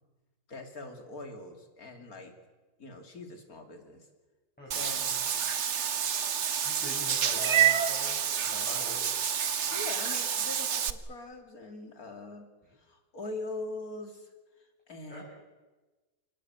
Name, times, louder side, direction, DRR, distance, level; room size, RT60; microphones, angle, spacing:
voice 1, 0.5-2.3 2.8-4.1 4.8-5.2 9.7-12.5 12.7-14.3 14.6-15.2, left 2 dB, 45° left, 4 dB, 3.4 m, -42 dB
voice 2, 4.6-4.9 6.6-9.2 15.1-15.3, left 1 dB, 5° left, -5 dB, 7.3 m, -43 dB
Meow / Water / Bathtub (filling or washing), 4.7-10.9, right 8 dB, 50° right, 1.0 m, -28 dB
28.0 x 19.5 x 8.1 m, 1.2 s
omnidirectional pair, 2.1 m